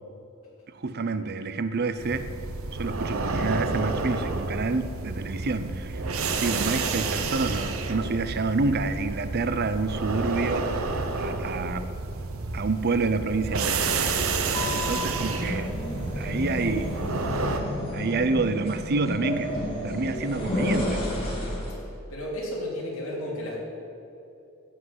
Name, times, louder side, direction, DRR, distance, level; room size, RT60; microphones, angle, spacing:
voice 1, 0.7-2.3 2.7-6.0 6.4-11.9 12.5-14.1 14.7-15.7 16.2-16.9 17.9-19.5 19.8-21.0, right 3 dB, 50° right, 12 dB, 0.6 m, -28 dB
sound 1, 2.0-17.6, right 3 dB, 80° right, 1.0 m, -30 dB
voice 2, 11.0-11.4 14.5-14.7 22.1-23.6, left 1 dB, 70° left, -3 dB, 3.4 m, -34 dB
sound 2, 14.3-21.8, left 1 dB, 25° left, 2.9 m, -31 dB
15.5 x 5.8 x 7.8 m, 2.8 s
head